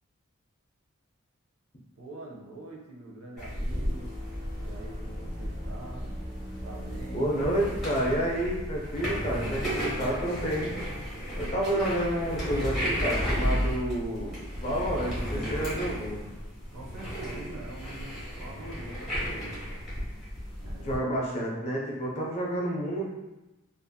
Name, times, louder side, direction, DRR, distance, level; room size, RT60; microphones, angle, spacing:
voice 1, 2.0-4.1 4.6-6.1 6.6-7.5 11.4-11.9 16.7-18.1 18.4-19.7 20.6-21.2, right 2 dB, 85° right, -2 dB, 0.6 m, -44 dB
sound 1, 3.4-21.0, equal, ahead, 1.0 m, -34 dB
sound 2, 3.4-8.7, equal, 35° right, 0.5 m, -42 dB
voice 2, 7.1-10.7 11.4-16.2 20.8-23.1, right 1 dB, 30° left, -3 dB, 0.4 m, -30 dB
2.7 x 2.4 x 2.2 m, 1.0 s
head